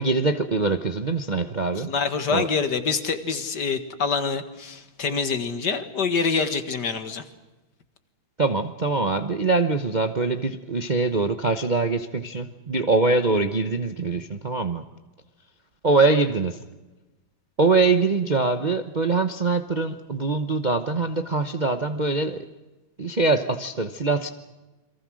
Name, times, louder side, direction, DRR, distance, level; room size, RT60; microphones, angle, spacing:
voice 1, 0.0-1.9 2.3-2.5 8.4-14.8 15.8-16.6 17.6-22.5 23.0-24.3, right 3 dB, 35° right, 7 dB, 0.8 m, -23 dB
voice 2, 1.9-7.2, left 5 dB, 55° left, 9 dB, 2.2 m, -26 dB
29.0 x 23.0 x 6.3 m, 1.1 s
omnidirectional pair, 2.2 m